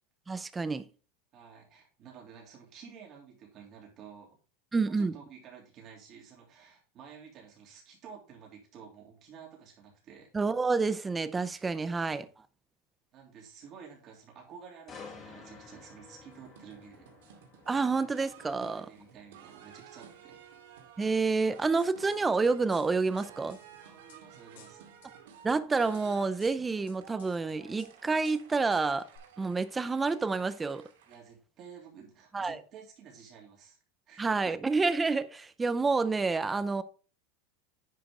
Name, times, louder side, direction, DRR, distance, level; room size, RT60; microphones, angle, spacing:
voice 1, 0.3-0.9 4.7-5.1 10.3-12.3 17.7-18.9 21.0-23.6 25.4-29.1 29.4-30.8 32.3-32.6 34.2-36.8, right 4 dB, 10° right, 0.5 m, -28 dB
voice 2, 1.3-4.4 4.8-10.3 13.1-17.1 18.6-20.4 23.8-24.9 31.1-33.8 34.1-34.5, right 7 dB, 30° right, 3.2 m, -51 dB
sound 1, 14.9-28.7 29.1-29.4, left 5 dB, 20° left, 1.9 m, -55 dB
sound 2, 16.3-31.2, right 8 dB, 90° right, 2.2 m, -54 dB
sound 3, 21.8-22.3 22.7-24.2 24.6-25.1 25.5-26.1 26.4-27.4 27.8-27.9 28.2-28.8 29.2-29.3, left 8 dB, 85° left, 2.6 m, -57 dB
10.0 x 5.1 x 3.7 m
supercardioid pair, 165°, 0 cm